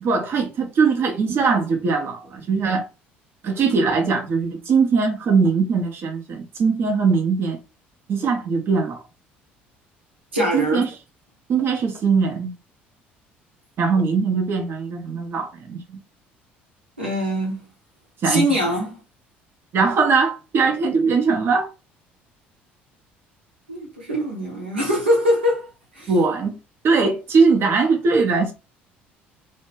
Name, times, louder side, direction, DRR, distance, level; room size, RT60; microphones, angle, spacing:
voice 1, 0.0-2.9 3.4-7.6 8.1-9.0 10.5-10.9 11.5-12.5 13.8-16.0 18.2-18.5 19.7-21.7 26.1-26.6 26.8-28.5, right 4 dB, 45° right, 0.6 m, -20 dB
voice 2, 10.3-10.8 17.0-17.7 18.2-19.0 23.7-25.7 25.9-26.1, equal, 85° right, 0.8 m, -22 dB
2.1 x 2.1 x 3.1 m
figure-of-eight pair, 55°, 6 cm